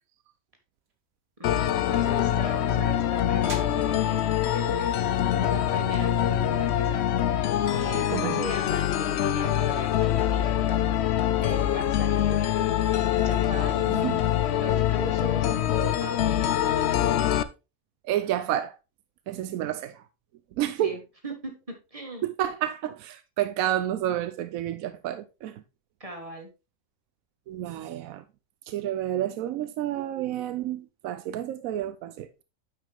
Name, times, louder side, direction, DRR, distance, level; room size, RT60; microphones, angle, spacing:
sound 1, 0.7-6.7, right 3 dB, 50° right, 1.7 m, -50 dB
sound 2, 1.4-17.4, left 11 dB, 60° left, 0.8 m, -24 dB
voice 1, 1.4-4.9 5.4-10.6 11.4-13.9 14.5-16.5 20.8-22.3 26.0-26.5, right 1 dB, 25° right, 1.9 m, -39 dB
voice 2, 13.9-14.2 18.1-18.8 19.3-20.0 20.6-21.0 22.2-25.6 27.5-28.2 28.7-32.3, right 12 dB, 85° right, 1.0 m, -30 dB
9.4 x 5.6 x 3.4 m
omnidirectional pair, 1.4 m